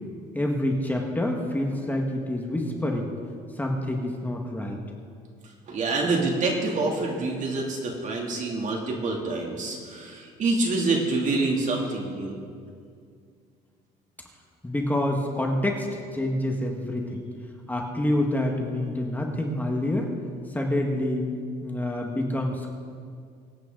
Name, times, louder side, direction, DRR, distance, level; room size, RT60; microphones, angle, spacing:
voice 1, 0.4-3.1 3.6-4.8 14.6-17.2 17.7-20.1 20.5-21.3 21.6-22.7, left 1 dB, 10° left, 1 dB, 1.6 m, -27 dB
voice 2, 5.7-12.4, right 3 dB, 50° right, 0 dB, 2.7 m, -26 dB
24.0 x 9.0 x 3.9 m, 2.2 s
cardioid pair, 110°, 17 cm